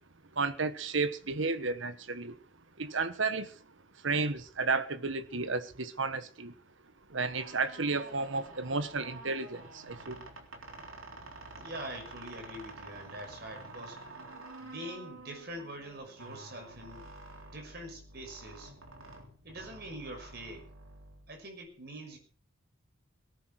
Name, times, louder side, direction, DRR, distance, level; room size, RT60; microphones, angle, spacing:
voice 1, 0.3-2.4 2.8-3.5 4.0-6.5 7.1-10.2, right 4 dB, 70° right, 1.4 m, -32 dB
sound 1, 7.1-21.7, right 2 dB, 85° right, 3.7 m, -49 dB
voice 2, 11.6-14.1 14.6-18.7 19.4-20.7 21.3-22.2, right 1 dB, 50° right, 6.3 m, -44 dB
18.5 x 10.5 x 6.4 m
head